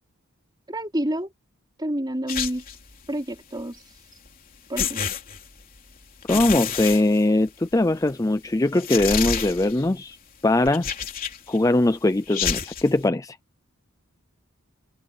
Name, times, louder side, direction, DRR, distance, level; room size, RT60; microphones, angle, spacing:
voice 1, 0.7-1.3 1.8-2.7 3.1-3.8 4.7-5.1, right 1 dB, 20° right, 3.6 m, -28 dB
sound 1, 2.3-2.9 4.3-4.4 4.8-5.8 6.2-7.7 8.1-8.2 8.8-9.9 10.6-11.6 12.3-12.9, left 7 dB, 40° left, 3.6 m, -29 dB
voice 2, 6.3-10.2 10.4-10.9 11.5-13.4, left 2 dB, 15° left, 0.4 m, -21 dB
head